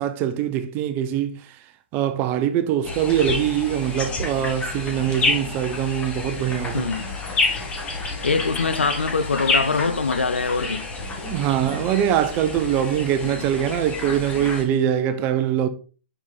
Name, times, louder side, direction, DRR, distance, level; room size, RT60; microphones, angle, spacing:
voice 1, 0.0-1.4 1.9-6.9 11.2-15.7, right 10 dB, 30° right, 0.7 m, -23 dB
sound 1, 2.8-14.6, left 3 dB, 20° left, 1.5 m, -29 dB
voice 2, 6.7-7.1 8.2-10.9, left 4 dB, 90° left, 0.7 m, -23 dB
5.6 x 4.9 x 4.0 m
hypercardioid pair, 125°, 6 cm